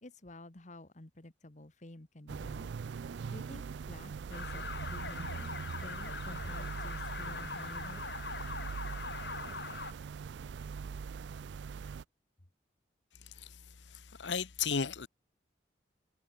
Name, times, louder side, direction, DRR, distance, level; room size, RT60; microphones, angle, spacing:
voice 1, 0.0-2.7 3.3-8.0, left 1 dB, 45° left, 1.7 m, -51 dB
sound 1, 2.3-12.0, right 5 dB, 75° right, 0.4 m, -42 dB
sound 2, 4.3-9.9, left 4 dB, 65° left, 3.0 m, -42 dB
voice 2, 14.2-15.1, left 6 dB, 90° left, 0.9 m, -33 dB
head